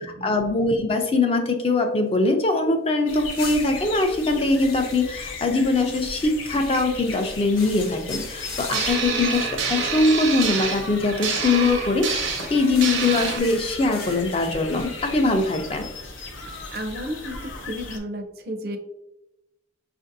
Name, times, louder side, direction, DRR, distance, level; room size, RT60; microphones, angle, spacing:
voice 1, 0.0-15.9, left 3 dB, 30° left, 4 dB, 0.4 m, -22 dB
sound 1, 2.8-2.9 3.2-11.8 12.1-17.0, left 3 dB, 55° left, 0.9 m, -42 dB
sound 2, 3.1-18.0, left 3 dB, 85° left, 0.7 m, -37 dB
sound 3, 8.7-13.4, right 5 dB, 85° right, 0.7 m, -27 dB
voice 2, 16.7-18.8, equal, 50° right, 5 dB, 0.5 m, -32 dB
5.8 x 2.5 x 2.6 m, 0.88 s
head